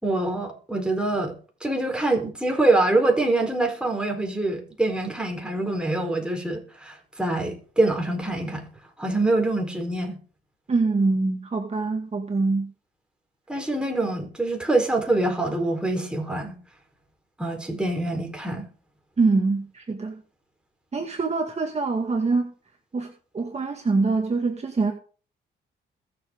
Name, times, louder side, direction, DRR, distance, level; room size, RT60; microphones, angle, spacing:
voice 1, 0.0-1.3 1.6-8.6 9.0-10.2 13.5-16.6 17.4-18.7, right 2 dB, 5° right, 4.5 m, -25 dB
voice 2, 10.7-12.7 19.2-20.2 20.9-22.5 22.9-24.9, right 3 dB, 35° right, 2.3 m, -24 dB
22.0 x 7.5 x 3.9 m
cardioid pair, 90°, 20 cm